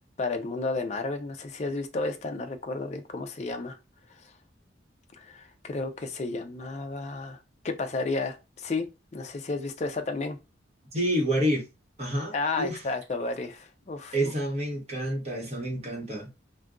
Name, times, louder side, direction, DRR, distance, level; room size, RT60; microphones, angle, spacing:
voice 1, 0.2-3.8 5.2-7.4 7.6-8.9 9.1-10.4 12.3-14.3, left 3 dB, 35° left, 0.4 m, -32 dB
voice 2, 10.9-11.6 12.0-12.8 14.1-16.3, equal, 35° right, 0.9 m, -28 dB
2.4 x 2.2 x 3.5 m
head